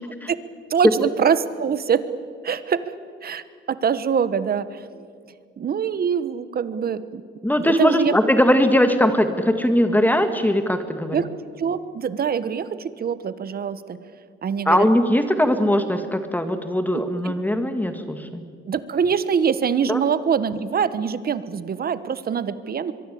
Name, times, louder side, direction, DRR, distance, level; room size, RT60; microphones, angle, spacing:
voice 1, 0.7-2.0 2.4-2.9 3.2-5.0 5.6-7.2 7.6-8.1 11.1-11.3 11.6-14.0 14.4-14.9 16.9-17.3 18.7-22.9, right 7 dB, 50° right, 14 dB, 1.3 m, -24 dB
voice 2, 7.4-11.2 14.7-18.4 19.9-20.0, left 1 dB, 10° left, 8 dB, 2.0 m, -20 dB
23.5 x 23.0 x 8.6 m, 2.1 s
cardioid pair, 90°, 20 cm